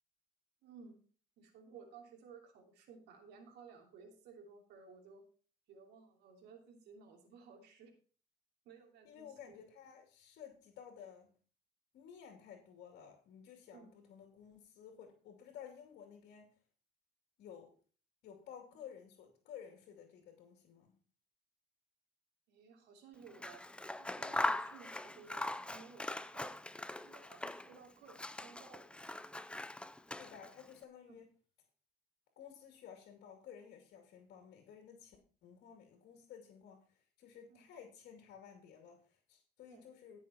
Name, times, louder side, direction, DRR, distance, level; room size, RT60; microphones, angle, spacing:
voice 1, 0.6-1.0 1.4-5.2 5.7-7.9 8.6-9.6 13.7-13.9 22.5-23.6 24.0-26.1 26.3-26.6 27.0-29.0 31.1-31.2 37.5-37.6 39.7-39.9, right 5 dB, 80° right, 2 dB, 3.1 m, -57 dB
voice 2, 9.0-11.3 11.9-16.6 17.4-17.7 18.2-20.9 30.2-31.3 32.4-40.2, left 8 dB, 70° left, 4 dB, 2.7 m, -54 dB
Scissors, 23.3-27.8 28.1-30.6, left 1 dB, 5° left, 0.6 m, -41 dB
16.5 x 6.3 x 4.3 m, 0.40 s
cardioid pair, 110°, 17 cm